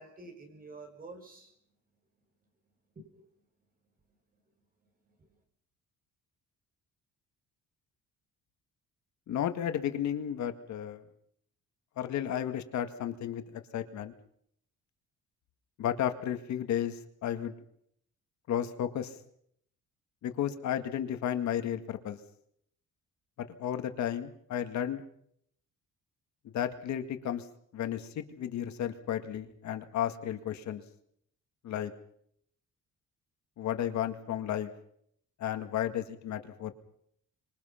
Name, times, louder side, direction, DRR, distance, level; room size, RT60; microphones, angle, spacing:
voice 1, 0.0-1.5 2.9-3.3 5.0-5.4, right 3 dB, 30° right, 4 dB, 6.3 m, -49 dB
voice 2, 9.3-11.0 12.0-14.1 15.8-17.5 18.5-19.2 20.2-22.2 23.4-25.0 26.5-27.5 27.7-30.8 31.6-31.9 33.6-34.7 35.4-36.7, left 10 dB, 65° left, 8 dB, 2.0 m, -33 dB
26.0 x 23.0 x 5.8 m, 0.70 s
cardioid pair, 150°, 30 cm